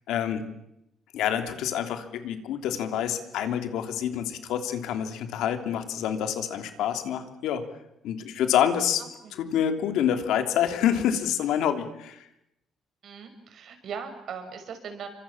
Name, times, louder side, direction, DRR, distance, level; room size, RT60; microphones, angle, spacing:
voice 1, 0.1-0.4 1.1-7.6 8.0-9.0 9.3-12.3, left 9 dB, 80° left, 7 dB, 3.1 m, -27 dB
voice 2, 9.0-9.3 13.0-15.1, right 6 dB, 50° right, 7 dB, 6.0 m, -39 dB
29.5 x 25.5 x 7.3 m, 0.85 s
cardioid pair, 155°, 0 cm